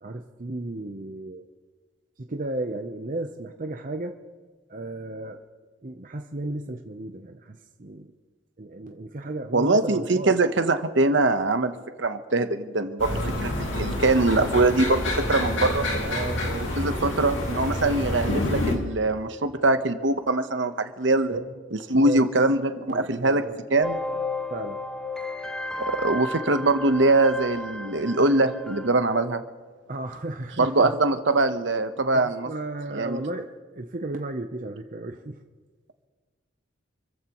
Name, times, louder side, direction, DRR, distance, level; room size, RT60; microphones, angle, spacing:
voice 1, 0.0-1.5 2.2-4.2 4.7-5.4 5.8-8.1 8.6-10.3 13.0-13.3 16.0-17.3 21.3-22.3 22.9-23.6 24.5-24.8 29.9-30.9 32.0-35.4, right 2 dB, 40° right, 5 dB, 0.8 m, -34 dB
voice 2, 9.5-11.7 12.0-13.1 13.4-15.0 15.3-15.8 16.8-21.4 21.7-23.4 23.7-24.0 25.8-29.4 30.6-32.5 32.9-33.2, right 2 dB, 65° right, 9 dB, 1.0 m, -22 dB
sound 1, 13.0-18.7, left 1 dB, 70° left, 2.7 m, -28 dB
sound 2, 23.8-28.9, left 2 dB, 5° left, 0.5 m, -33 dB
28.0 x 14.5 x 3.1 m, 1.4 s
head